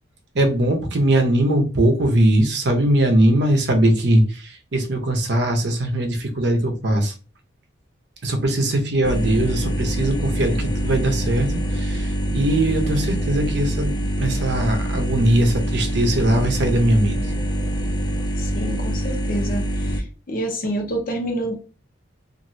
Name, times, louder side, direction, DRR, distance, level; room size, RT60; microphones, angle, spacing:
voice 1, 0.3-7.1 8.2-11.5 11.7-17.2, right 1 dB, 60° right, 4 dB, 0.7 m, -20 dB
sound 1, 9.0-20.0, right 1 dB, 25° left, 0.3 m, -24 dB
voice 2, 18.4-21.5, right 1 dB, 45° left, 3 dB, 0.7 m, -28 dB
3.0 x 2.5 x 2.6 m, 0.34 s
head